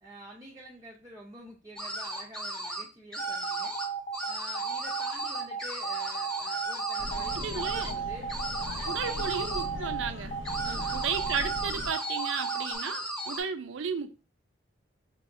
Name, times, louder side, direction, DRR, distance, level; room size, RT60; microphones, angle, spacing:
voice 1, 0.0-3.8 4.3-8.3 8.7-9.7 10.6-11.1, right 1 dB, 15° right, 0.5 m, -48 dB
sound 1, 1.8-2.8 3.1-3.9 4.1-7.9 8.3-9.7 10.4-13.4, right 1 dB, 5° left, 0.9 m, -36 dB
sound 2, 3.2-12.8, right 7 dB, 35° left, 0.4 m, -35 dB
sound 3, 7.0-11.9, left 1 dB, 75° left, 0.7 m, -39 dB
voice 2, 7.3-8.0 8.9-10.4 10.6-14.1, right 6 dB, 70° right, 0.4 m, -34 dB
4.8 x 2.9 x 2.5 m
head